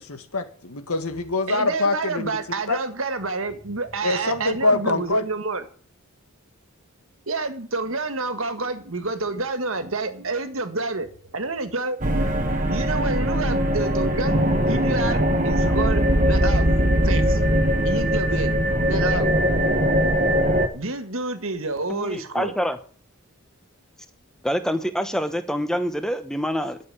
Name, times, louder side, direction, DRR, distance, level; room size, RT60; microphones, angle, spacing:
voice 1, 0.0-2.3 2.7-2.8 4.0-5.2 12.5-12.6, left 2 dB, 85° left, 1.8 m, -24 dB
voice 2, 1.5-5.6 7.3-12.0 12.7-16.7 17.0-17.4 17.9-19.3 20.7-22.5, right 3 dB, 70° right, 1.8 m, -29 dB
sound 1, 12.0-20.7, equal, 35° right, 1.4 m, -21 dB
voice 3, 21.9-22.8 24.4-26.8, equal, 5° left, 1.0 m, -26 dB
12.0 x 6.7 x 8.7 m
head